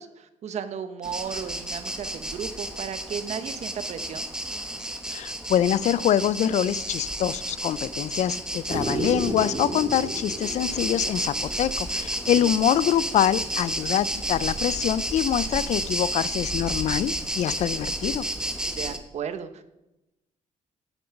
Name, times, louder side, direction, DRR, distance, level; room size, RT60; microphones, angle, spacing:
voice 1, 0.0-4.3 12.3-12.6 18.8-19.7, right 7 dB, 60° right, 11 dB, 1.0 m, -35 dB
sound 1, 1.0-19.0, right 1 dB, 5° right, 1.0 m, -31 dB
voice 2, 5.1-18.3, left 10 dB, 60° left, 19 dB, 0.4 m, -25 dB
sound 2, 8.7-12.0 14.5-14.6, right 2 dB, 30° right, 2.0 m, -32 dB
11.5 x 7.8 x 5.9 m, 0.94 s
cardioid pair, 110°, 13 cm